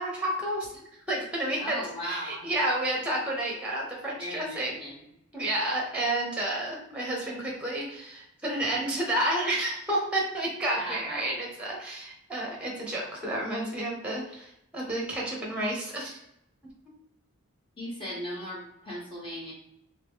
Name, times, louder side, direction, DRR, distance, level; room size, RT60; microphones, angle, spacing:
voice 1, 0.0-4.8 5.3-16.2, right 1 dB, 5° right, -2 dB, 0.8 m, -30 dB
voice 2, 1.6-2.5 4.2-5.1 10.8-11.3 17.8-19.5, equal, 25° left, -5 dB, 1.1 m, -37 dB
3.1 x 2.9 x 3.5 m, 0.81 s
head